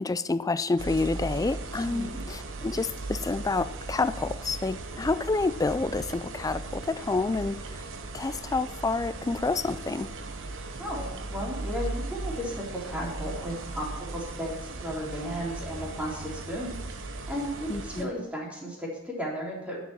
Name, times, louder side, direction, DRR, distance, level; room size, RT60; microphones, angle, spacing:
voice 1, 0.0-7.6 8.1-10.1 17.7-18.1, left 3 dB, 15° left, 14 dB, 0.3 m, -28 dB
sound 1, 0.8-18.0, right 2 dB, 60° right, 1.0 m, -37 dB
voice 2, 10.8-19.8, equal, 5° right, -4 dB, 3.4 m, -35 dB
10.0 x 7.1 x 4.4 m, 1.0 s
head